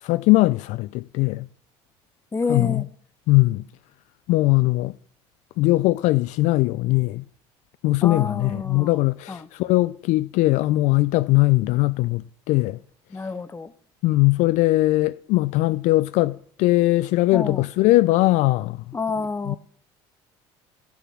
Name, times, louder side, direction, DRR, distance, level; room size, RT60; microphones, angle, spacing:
voice 1, 0.0-1.5 2.5-2.9 3.3-3.6 4.3-4.9 5.6-7.2 7.8-12.8 14.0-19.0 19.5-19.6, left 19 dB, 65° left, 0.4 m, -20 dB
voice 2, 2.3-2.9 8.0-9.0 9.3-9.5 13.1-13.7 17.3-17.7 18.9-19.6, left 4 dB, 20° left, 1.0 m, -28 dB
14.5 x 7.0 x 6.0 m
hypercardioid pair, 75°, 13 cm